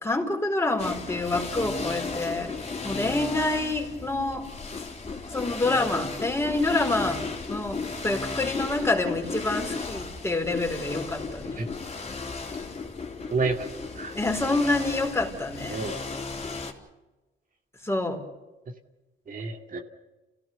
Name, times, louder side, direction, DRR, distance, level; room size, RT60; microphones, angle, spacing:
voice 1, 0.0-2.5 2.8-4.5 5.3-7.2 7.5-11.6 14.1-15.8 17.8-18.2, left 2 dB, 15° left, 3 dB, 4.7 m, -27 dB
sound 1, 0.8-16.7, left 4 dB, 30° left, 3.7 m, -35 dB
voice 2, 13.3-14.2 15.6-16.0 19.3-19.8, right 3 dB, 45° right, 3 dB, 2.4 m, -30 dB
28.0 x 16.5 x 7.0 m, 1.1 s
cardioid pair, 90°, 20 cm